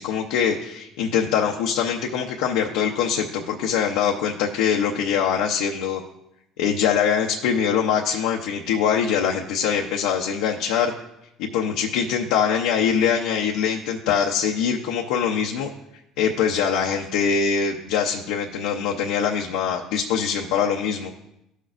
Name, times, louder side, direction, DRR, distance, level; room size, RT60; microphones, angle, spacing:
voice 1, 0.0-6.0 6.6-10.9 11.4-15.7 16.2-21.1, left 7 dB, 85° left, 0 dB, 0.7 m, -23 dB
14.5 x 6.4 x 2.5 m, 0.84 s
supercardioid pair, 90°, 0 cm